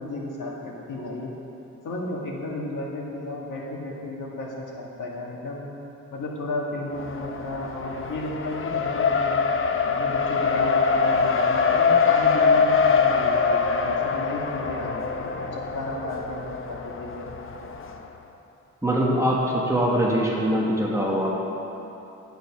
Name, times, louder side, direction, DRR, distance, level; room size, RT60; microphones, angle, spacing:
voice 1, 0.0-1.3 1.8-5.7 6.1-9.5 9.9-17.3, left 2 dB, 90° left, -2 dB, 2.0 m, -33 dB
Race car auto racing, 7.0-18.0, left 5 dB, 45° left, 0.6 m, -23 dB
voice 2, 18.8-21.4, equal, 10° right, -4 dB, 1.2 m, -23 dB
10.5 x 9.2 x 6.0 m, 3.0 s
wide cardioid pair, 170°, 30 cm